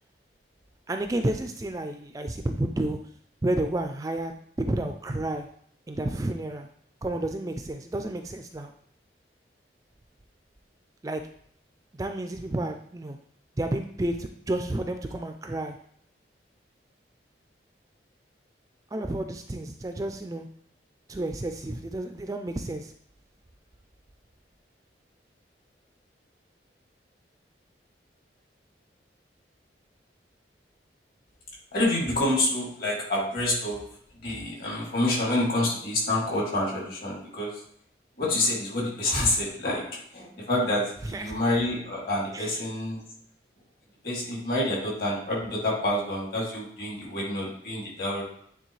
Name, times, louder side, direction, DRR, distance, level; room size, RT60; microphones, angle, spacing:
voice 1, 0.9-3.0 3.4-4.3 4.6-5.5 5.9-6.7 7.0-8.7 11.0-11.2 12.0-13.2 13.6-15.7 18.9-20.5 21.1-22.9 41.1-41.4 42.3-42.5, right 1 dB, 20° right, 6 dB, 0.3 m, -30 dB
voice 2, 31.7-33.8 34.2-37.6 38.2-39.9 40.1-43.0 44.0-48.2, left 1 dB, 55° left, -4 dB, 2.5 m, -27 dB
9.1 x 3.6 x 3.2 m, 0.65 s
head